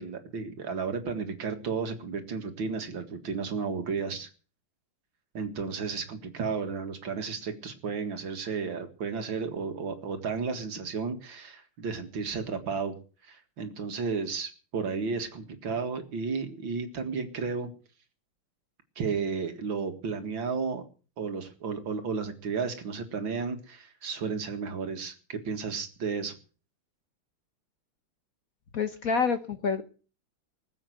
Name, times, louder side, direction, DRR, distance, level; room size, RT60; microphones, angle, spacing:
voice 1, 0.0-4.3 5.3-12.9 13.2-17.7 19.0-20.8 21.2-26.3, right 5 dB, 65° right, 7 dB, 2.6 m, -33 dB
voice 2, 28.7-29.8, left 5 dB, 50° left, 9 dB, 1.3 m, -27 dB
20.0 x 7.9 x 7.9 m, 0.38 s
omnidirectional pair, 2.3 m